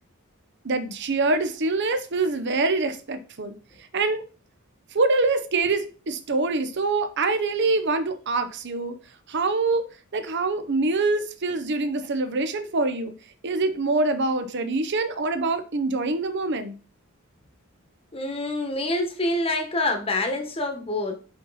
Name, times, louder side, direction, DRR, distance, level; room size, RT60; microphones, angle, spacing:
voice 1, 0.6-3.5 3.9-4.2 4.9-8.9 9.3-9.8 10.1-13.1 13.4-16.7, right 3 dB, 55° right, 10 dB, 0.8 m, -25 dB
voice 2, 18.1-21.1, left 2 dB, 25° left, 4 dB, 1.2 m, -26 dB
5.6 x 5.5 x 4.1 m, 0.37 s
head